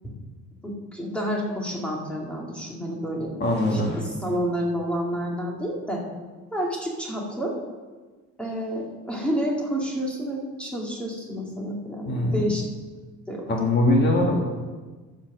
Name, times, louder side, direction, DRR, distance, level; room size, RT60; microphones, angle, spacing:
voice 1, 0.6-6.0 6.5-7.6 8.4-12.6 13.3-13.5, equal, 5° left, -2 dB, 2.2 m, -29 dB
voice 2, 3.4-4.0 12.1-12.5 13.5-14.4, left 1 dB, 35° left, 0 dB, 2.0 m, -22 dB
14.0 x 5.9 x 6.1 m, 1.3 s
cardioid pair, 150°, 30 cm